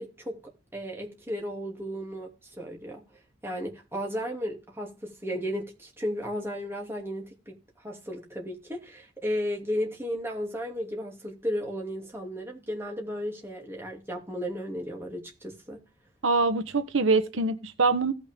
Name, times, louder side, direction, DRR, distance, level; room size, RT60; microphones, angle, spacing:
voice 1, 0.0-3.0 3.4-15.8, equal, 10° right, 2.8 m, -34 dB
voice 2, 16.2-18.1, right 3 dB, 80° right, 1.2 m, -24 dB
17.0 x 6.1 x 3.7 m
head